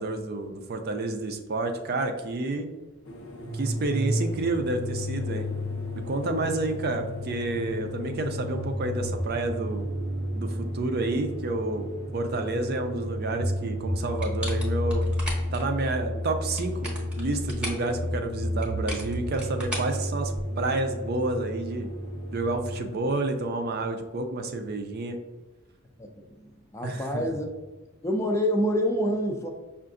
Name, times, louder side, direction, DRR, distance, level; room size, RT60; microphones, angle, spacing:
voice 1, 0.0-2.7 3.5-5.5 6.1-9.9 10.3-15.0 15.5-21.9 22.3-25.2 26.8-27.2, right 2 dB, 45° right, 6 dB, 0.4 m, -29 dB
sound 1, 3.0-23.0, equal, 75° left, 0.7 m, -43 dB
sound 2, 3.4-22.6, equal, 85° right, 0.7 m, -32 dB
sound 3, 14.2-15.6 16.4-17.9 18.6-20.6, equal, 5° right, 0.9 m, -37 dB
voice 2, 26.0-27.5 28.0-29.5, equal, 15° left, 2 dB, 0.4 m, -27 dB
5.6 x 2.5 x 2.5 m, 1.2 s
head